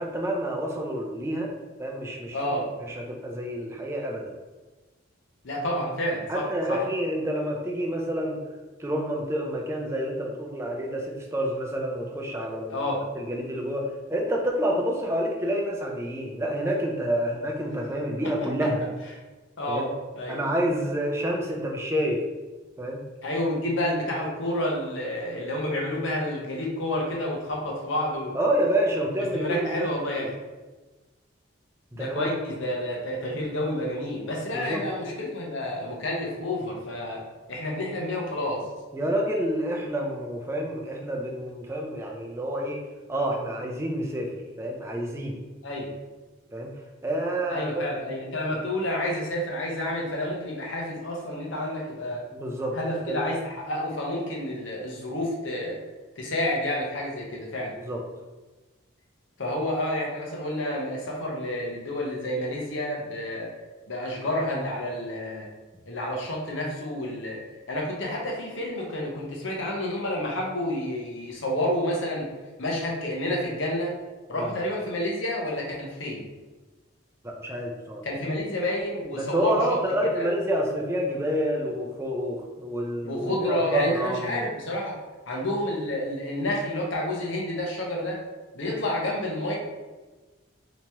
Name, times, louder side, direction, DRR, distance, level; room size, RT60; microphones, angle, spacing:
voice 1, 0.0-1.5 1.8-2.4 2.8-4.3 6.3-8.4 8.8-12.8 13.1-18.8 19.7-19.9 20.3-22.2 22.8-23.0 28.3-29.8 30.1-30.3 31.9-32.3 34.5-34.8 38.9-42.8 43.1-44.3 44.6-45.4 46.5-46.7 47.0-47.9 52.3-52.8 53.1-53.2 57.7-58.0 74.3-74.5 77.2-78.0 79.1-84.5, right 1 dB, 15° right, 0 dB, 0.4 m, -28 dB
voice 2, 2.3-2.6 5.4-6.8 12.7-13.0 18.2-18.5 19.6-19.9 20.2-20.4 23.2-28.4 29.3-30.4 31.9-37.2 37.5-38.6 45.6-45.9 47.5-52.2 52.7-55.8 56.2-57.7 59.4-63.5 63.9-65.5 65.9-67.4 67.7-72.3 72.6-73.9 74.3-76.2 78.0-79.6 80.2-80.3 83.0-85.0 85.3-88.2 88.5-89.6, left 1 dB, 65° left, -1 dB, 0.8 m, -29 dB
3.4 x 2.9 x 2.9 m, 1.2 s
head